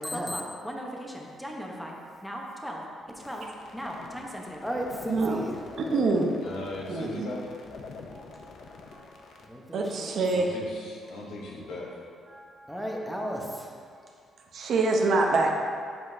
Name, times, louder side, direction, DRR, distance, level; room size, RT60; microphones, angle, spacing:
voice 1, 0.0-2.0 2.2-2.8 3.2-3.5 3.7-5.6 9.5-10.2 12.7-13.8, equal, ahead, -1 dB, 0.9 m, -35 dB
sound 1, 3.2-9.5, left 4 dB, 70° left, 0.6 m, -46 dB
voice 2, 5.1-5.4 5.8-6.4 6.9-7.3 9.7-10.5 14.5-15.5, right 3 dB, 65° right, 1 dB, 0.7 m, -25 dB
voice 3, 6.4-7.4 10.3-11.9, left 2 dB, 90° left, -3 dB, 1.1 m, -38 dB
voice 4, 8.1-9.8 11.0-11.7 12.2-13.0 14.1-14.2 14.8-14.9, equal, 30° right, -4 dB, 1.3 m, -55 dB
7.6 x 5.2 x 2.7 m, 2.2 s
cardioid pair, 90°, 0 cm